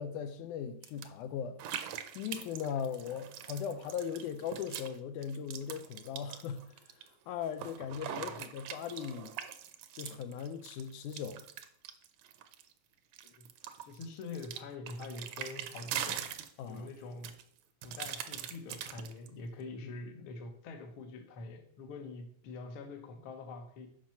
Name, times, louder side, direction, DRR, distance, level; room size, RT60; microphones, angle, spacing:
voice 1, 0.0-1.6 2.2-6.6 7.3-9.3 10.0-11.4 16.6-16.9 19.8-19.9, left 7 dB, 85° left, 2.1 m, -38 dB
sound 1, 0.8-1.1 1.6-5.0 5.2-7.1 7.4-12.7 13.1-16.9 17.2-19.3, right 10 dB, 70° right, 1.7 m, -42 dB
voice 2, 13.8-16.3 16.6-17.4 17.8-23.9, left 3 dB, 55° left, 1.6 m, -45 dB
7.6 x 5.9 x 5.7 m
omnidirectional pair, 3.5 m